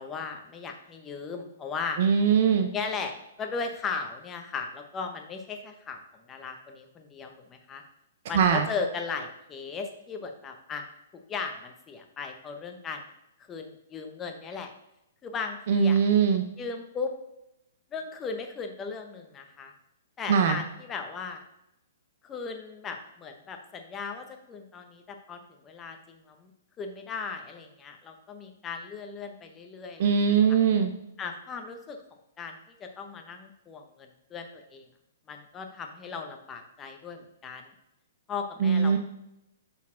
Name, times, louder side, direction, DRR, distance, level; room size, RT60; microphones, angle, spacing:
voice 1, 0.0-2.0 2.7-3.1 3.4-7.8 8.3-10.9 11.3-13.0 13.5-14.7 15.2-16.0 16.6-17.1 17.9-19.7 20.2-21.4 22.2-26.5 26.8-30.6 31.2-32.0 32.4-34.8 35.3-37.7 38.3-39.0, left 5 dB, 15° left, 5 dB, 0.7 m, -37 dB
voice 2, 2.0-2.7 8.3-8.6 15.7-16.4 20.3-20.6 30.0-30.9 38.6-39.0, right 6 dB, 45° right, 6 dB, 0.6 m, -21 dB
8.6 x 4.1 x 3.7 m, 0.85 s
hypercardioid pair, 165°, 0 cm